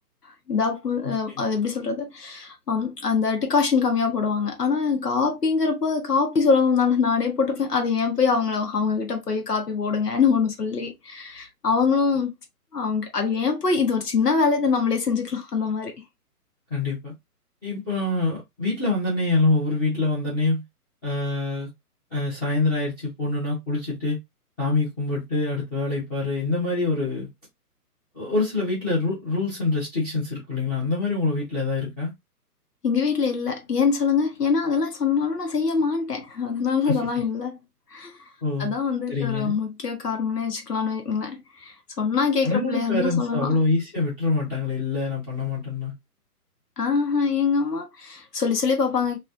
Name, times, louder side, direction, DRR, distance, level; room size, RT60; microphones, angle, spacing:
voice 1, 0.5-12.3 12.7-15.9 32.8-37.6 37.9-38.1 38.6-43.5 46.8-49.2, left 5 dB, 85° left, 1.0 m, -24 dB
voice 2, 1.0-1.4 16.7-17.1 17.6-20.6 21.0-21.7 22.1-24.2 24.6-27.3 28.1-32.1 36.9-37.0 38.4-38.7 39.1-39.6 42.4-45.9, left 3 dB, 15° left, 0.7 m, -25 dB
3.1 x 2.3 x 2.5 m
figure-of-eight pair, 135°, 47 cm